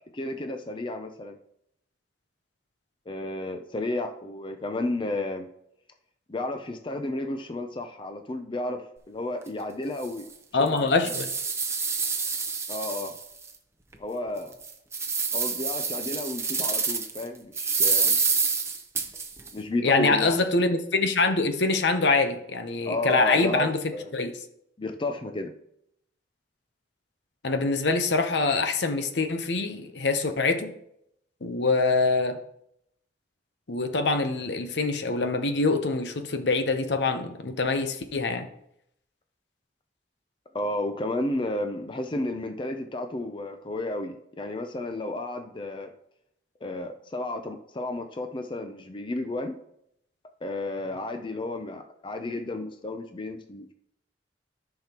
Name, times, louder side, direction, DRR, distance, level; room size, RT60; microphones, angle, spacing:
voice 1, 0.1-1.4 3.1-5.5 6.3-10.3 10.6-10.9 12.7-13.1 14.0-14.5 15.3-18.2 19.5-20.4 22.9-24.1 24.8-25.5 40.5-45.9 46.6-49.6 50.4-53.7, left 2 dB, 30° left, 0.5 m, -32 dB
sound 1, 9.4-9.5 10.0-10.1 10.7-13.5 13.9-14.0 14.5-17.2 17.6-19.5, right 5 dB, 15° right, 0.8 m, -27 dB
voice 2, 10.5-11.3 19.8-23.8 24.1-24.3 27.4-30.7 31.4-32.4 33.7-38.5, left 3 dB, 70° left, 0.8 m, -24 dB
14.0 x 5.8 x 3.0 m
head